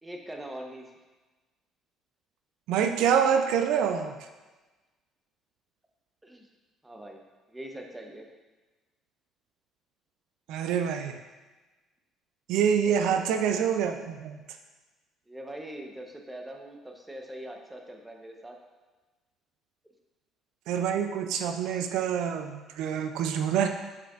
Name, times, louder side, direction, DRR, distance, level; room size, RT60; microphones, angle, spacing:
voice 1, 0.0-0.9 6.2-6.5 6.8-7.2 7.5-8.3 12.8-13.2 15.3-18.6, right 1 dB, 10° right, 2 dB, 0.9 m, -42 dB
voice 2, 2.7-4.3 10.5-11.2 12.5-14.4 20.7-23.7, right 8 dB, 80° right, 6 dB, 0.4 m, -26 dB
7.7 x 5.7 x 2.5 m, 1.2 s
cardioid pair, 95°, 0 cm